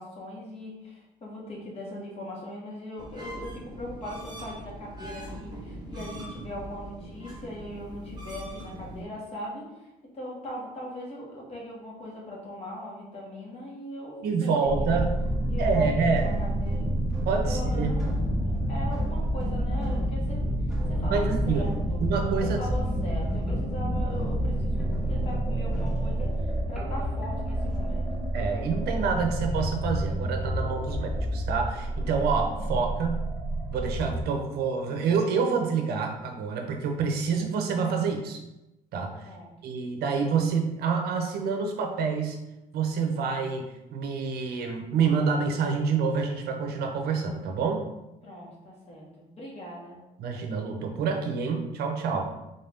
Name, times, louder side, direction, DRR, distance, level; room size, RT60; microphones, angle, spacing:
voice 1, 0.0-14.5 14.8-15.0 15.5-15.9 16.2-16.9 17.4-18.1 18.4-20.4 20.9-22.0 22.5-28.1 39.2-39.5 48.2-50.0 52.2-52.3, equal, 35° left, -4 dB, 1.4 m, -40 dB
sound 1, 3.0-9.0, equal, 25° right, 1.1 m, -41 dB
voice 2, 14.2-15.1 15.6-16.3 17.2-17.9 21.1-21.7 22.0-22.6 28.3-33.2 33.7-38.4 38.9-39.3 39.6-42.4 42.7-47.8 50.2-52.2, right 5 dB, 70° right, 3 dB, 0.6 m, -27 dB
sound 2, 14.6-34.2, right 1 dB, 5° right, 0.9 m, -28 dB
3.8 x 2.7 x 3.4 m, 0.94 s
cardioid pair, 110°, 17 cm